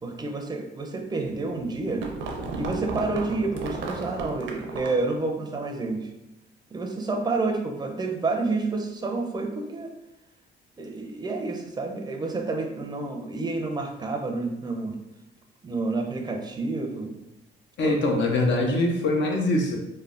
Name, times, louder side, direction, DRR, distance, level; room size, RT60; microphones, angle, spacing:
voice 1, 0.0-2.0 2.6-6.1 6.7-9.9 10.8-15.0 15.6-17.2 17.8-17.9, right 3 dB, 20° right, 3 dB, 0.5 m, -29 dB
sound 1, 1.6-5.1, right 4 dB, 70° right, 0.5 m, -34 dB
voice 2, 17.8-19.8, left 2 dB, 65° left, 1 dB, 0.6 m, -23 dB
3.2 x 2.1 x 2.5 m, 0.89 s
cardioid pair, 90°, 20 cm